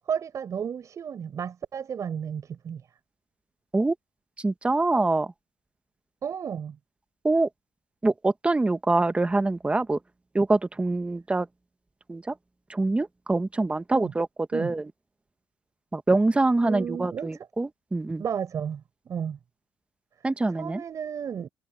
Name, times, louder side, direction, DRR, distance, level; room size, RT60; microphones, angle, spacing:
voice 1, 0.1-2.8 6.2-6.8 13.9-14.1 14.5-14.7 16.6-17.3 18.2-19.4 20.5-21.5, right 7 dB, 55° right, 6.8 m, -32 dB
voice 2, 4.4-5.3 7.2-7.5 8.0-10.0 10.3-11.5 12.1-12.3 12.7-14.3 14.5-14.9 15.9-18.2 20.2-20.8, right 2 dB, 15° right, 1.2 m, -24 dB
cardioid pair, 80°, 7 cm